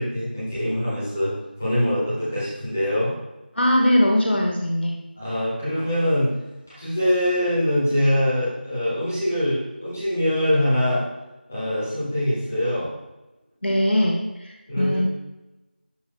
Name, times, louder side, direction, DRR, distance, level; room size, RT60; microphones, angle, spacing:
voice 1, 0.0-1.3 1.6-3.1 5.2-6.3 6.7-11.0 11.5-12.9 14.7-15.0, equal, 10° left, -12 dB, 1.2 m, -23 dB
voice 2, 3.5-5.0 13.6-15.0, equal, 90° left, -1 dB, 1.2 m, -21 dB
11.5 x 4.3 x 2.2 m, 1.0 s
figure-of-eight pair, 180°, 6 cm